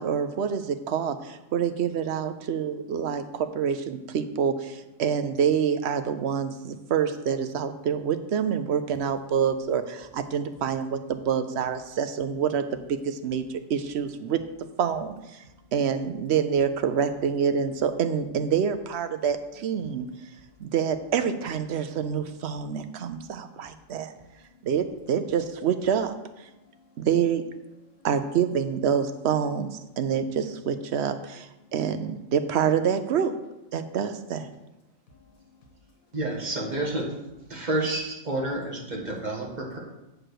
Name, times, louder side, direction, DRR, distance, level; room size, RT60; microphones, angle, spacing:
voice 1, 0.0-14.4 14.8-15.4 15.7-20.1 20.6-24.1 24.6-26.2 27.0-27.5 28.0-33.4 33.7-34.5, right 7 dB, 60° right, 9 dB, 0.8 m, -27 dB
voice 2, 19.8-20.5 22.6-23.0 24.3-24.7 26.5-27.1 31.6-31.7 35.1-36.1 37.5-37.7, left 3 dB, 85° left, 0 dB, 1.7 m, -59 dB
voice 3, 36.1-37.1 37.5-39.8, right 2 dB, 35° right, -1 dB, 1.6 m, -29 dB
7.6 x 4.8 x 6.5 m, 0.95 s
omnidirectional pair, 1.4 m